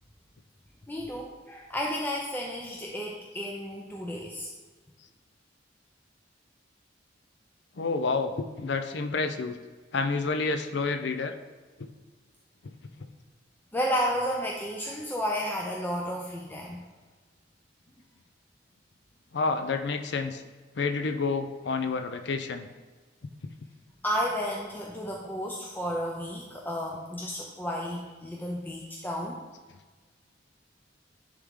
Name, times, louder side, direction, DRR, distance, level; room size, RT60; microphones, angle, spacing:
voice 1, 0.9-4.5 13.7-16.8 24.0-29.4, equal, 10° left, -1 dB, 0.5 m, -32 dB
voice 2, 7.8-9.6 9.9-11.3 11.8-11.9 19.3-20.4 20.8-22.7, left 4 dB, 65° left, 8 dB, 0.5 m, -29 dB
9.9 x 3.7 x 3.6 m, 1.4 s
head